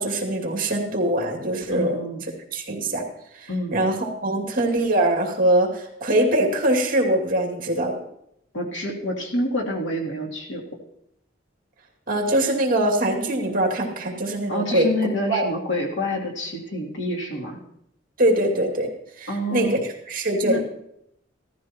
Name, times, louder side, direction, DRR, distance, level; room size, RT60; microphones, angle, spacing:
voice 1, 0.0-2.0 2.5-3.0 3.3-7.9 12.1-14.9 15.3-15.5 18.2-18.9 19.2-19.8 20.1-20.6, right 1 dB, 45° right, 1 dB, 2.3 m, -22 dB
voice 2, 1.7-2.2 3.5-3.8 8.5-10.6 14.5-17.6 19.3-19.8 20.4-20.6, left 1 dB, 70° left, -1 dB, 2.9 m, -27 dB
16.5 x 14.0 x 3.0 m, 0.77 s
head